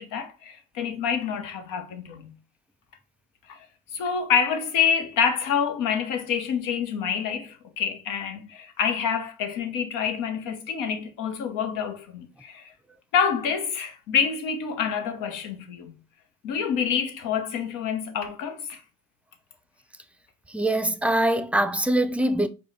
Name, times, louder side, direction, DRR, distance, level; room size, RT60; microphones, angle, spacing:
voice 1, 0.0-2.3 3.5-3.7 3.9-12.7 13.1-15.9 16.4-18.8, left 7 dB, 75° left, 0.8 m, -27 dB
voice 2, 20.5-22.5, right 1 dB, 5° right, 0.4 m, -23 dB
5.0 x 2.2 x 3.2 m
hypercardioid pair, 55°, 32 cm